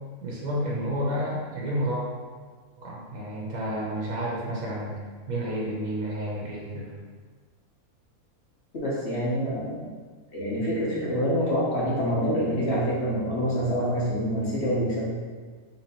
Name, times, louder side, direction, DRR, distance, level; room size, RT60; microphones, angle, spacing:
voice 1, 0.2-2.1 2.8-5.0 5.3-6.9, equal, 70° right, -5 dB, 1.3 m, -30 dB
voice 2, 8.8-9.9 10.3-15.2, equal, 50° left, -6 dB, 1.2 m, -26 dB
3.7 x 3.0 x 4.2 m, 1.5 s
omnidirectional pair, 1.6 m